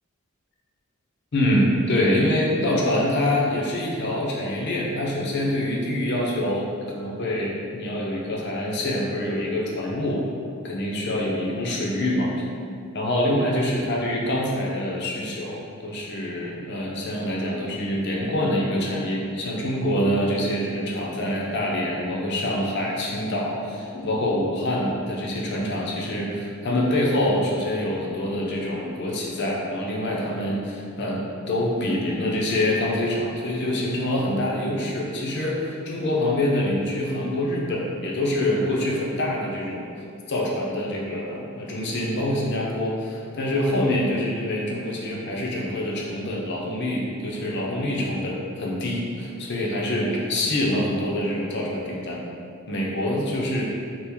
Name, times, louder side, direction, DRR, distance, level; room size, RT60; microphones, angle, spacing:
voice 1, 1.3-10.3 10.6-12.3 12.9-39.9 40.3-52.2 52.7-53.6, left 1 dB, 50° left, -3 dB, 0.6 m, -25 dB
2.9 x 2.4 x 3.5 m, 2.4 s
head